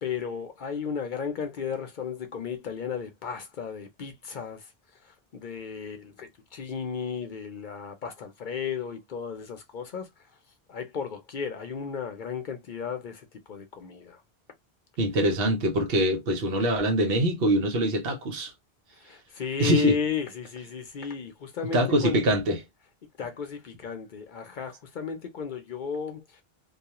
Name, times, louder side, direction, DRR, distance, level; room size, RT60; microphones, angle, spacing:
voice 1, 0.0-10.3 10.7-14.2 19.0-22.2 23.2-26.4, left 6 dB, 55° left, 0.7 m, -34 dB
voice 2, 15.0-18.5 19.6-20.0 21.7-22.6, right 1 dB, 70° right, 0.9 m, -24 dB
2.3 x 2.3 x 2.8 m
omnidirectional pair, 1.0 m